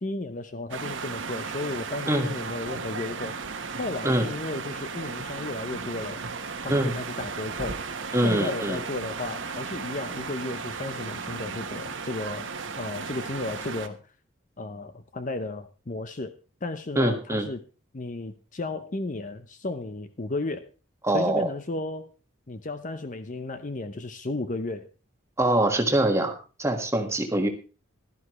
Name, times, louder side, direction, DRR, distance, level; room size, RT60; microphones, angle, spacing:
voice 1, 0.0-3.4 3.8-6.2 6.6-12.5 12.8-14.0 14.6-16.3 16.6-17.6 17.9-20.7 21.1-22.1 22.5-24.9, left 2 dB, 40° left, 10 dB, 0.7 m, -34 dB
sound 1, 0.7-13.9, right 5 dB, 65° right, 1.2 m, -35 dB
voice 2, 8.1-8.8 16.9-17.5 21.0-21.5 25.4-26.3 26.6-27.5, right 1 dB, 15° right, 4 dB, 1.6 m, -23 dB
16.0 x 12.0 x 3.1 m, 0.34 s
head